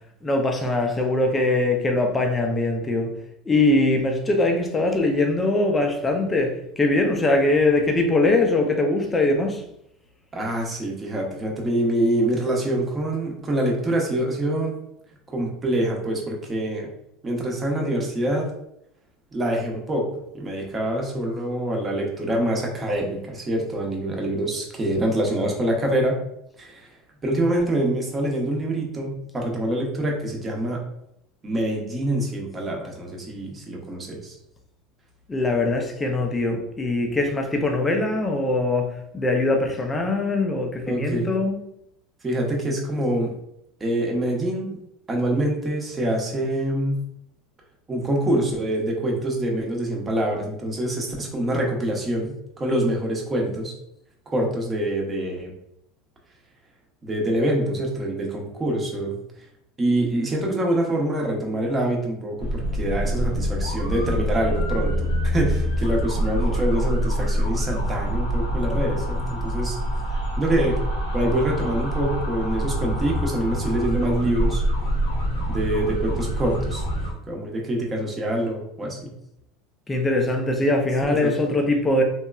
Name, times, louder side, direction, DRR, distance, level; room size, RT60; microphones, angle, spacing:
voice 1, 0.2-3.1 3.5-9.6 35.3-41.6 79.9-82.0, left 2 dB, 20° left, 3 dB, 0.5 m, -22 dB
voice 2, 10.3-14.7 15.3-16.9 17.2-18.5 19.3-20.1 20.3-26.2 26.6-26.9 27.2-30.8 31.4-34.3 40.9-41.3 42.2-43.3 43.8-44.8 45.1-47.0 47.9-53.7 54.3-55.5 57.0-59.1 59.8-69.8 70.4-70.8 71.1-74.6 75.5-76.8 77.3-79.1 81.1-81.3, right 1 dB, 25° right, 0 dB, 0.8 m, -25 dB
sound 1, 62.4-77.1, equal, 80° left, 0.8 m, -25 dB
2.9 x 2.2 x 2.3 m, 0.76 s
supercardioid pair, 100°, 0 cm